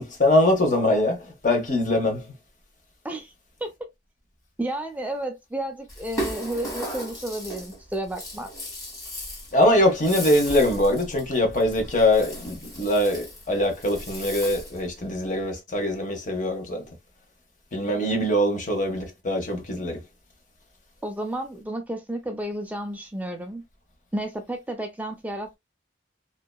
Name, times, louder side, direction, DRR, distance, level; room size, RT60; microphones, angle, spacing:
voice 1, 0.0-2.3 9.5-16.8 17.7-20.0, left 1 dB, 45° left, 0.9 m, -23 dB
voice 2, 3.6-3.9 4.6-8.5 21.0-23.6 24.1-25.6, right 1 dB, 10° right, 0.3 m, -32 dB
Rattle (instrument), 5.9-14.9, equal, 20° left, 1.5 m, -36 dB
2.7 x 2.2 x 2.2 m
head